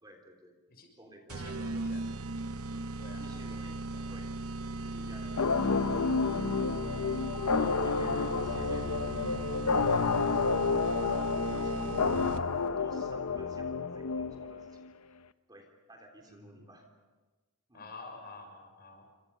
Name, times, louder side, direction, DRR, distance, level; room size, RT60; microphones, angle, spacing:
voice 1, 0.0-0.6 1.0-2.0 2.7-2.9 3.2-3.8 4.1-4.3 4.8-5.4 7.5-12.1 12.8-14.9 15.5-16.9 17.7-17.9, right 1 dB, 20° right, 2 dB, 3.4 m, -53 dB
voice 2, 1.3-2.1 3.0-4.1 16.3-16.7 17.7-19.0, left 3 dB, 45° left, 4 dB, 6.2 m, -50 dB
sound 1, 1.3-12.7, right 2 dB, 75° right, 0.9 m, -38 dB
Lofi Piano Chords, 5.4-14.8, left 4 dB, 85° left, 0.8 m, -30 dB
28.0 x 26.5 x 5.5 m, 1.2 s
head